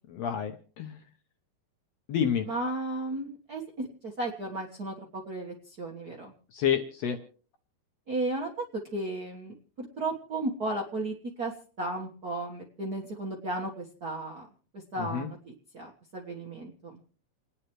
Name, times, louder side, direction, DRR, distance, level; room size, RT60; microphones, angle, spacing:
voice 1, 0.1-1.0 2.1-2.5 6.5-7.2 15.0-15.3, left 8 dB, 70° left, 5 dB, 1.7 m, -29 dB
voice 2, 2.4-6.3 8.1-8.5 8.9-11.5 11.8-14.5 14.9-17.0, right 2 dB, 50° right, -1 dB, 1.2 m, -34 dB
29.5 x 9.9 x 3.1 m, 0.42 s
omnidirectional pair, 3.7 m